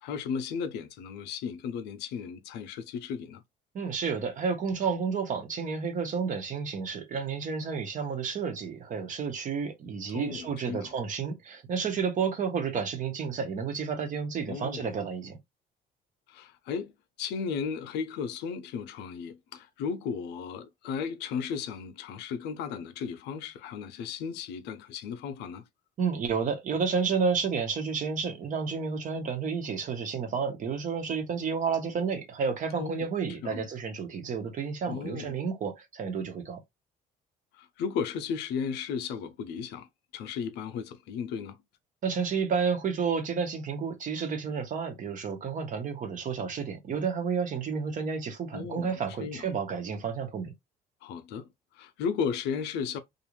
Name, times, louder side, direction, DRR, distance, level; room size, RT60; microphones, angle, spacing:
voice 1, 0.0-3.4 10.1-10.9 14.5-15.0 16.3-16.9 17.2-25.6 32.8-33.1 33.4-33.7 34.9-35.4 37.5-41.6 48.5-49.5 51.0-53.0, left 6 dB, 85° left, 0.6 m, -35 dB
voice 2, 3.7-15.4 26.0-36.6 42.0-50.5, right 6 dB, 50° right, 1.0 m, -31 dB
2.6 x 2.4 x 3.0 m
cardioid pair, 110°, 17 cm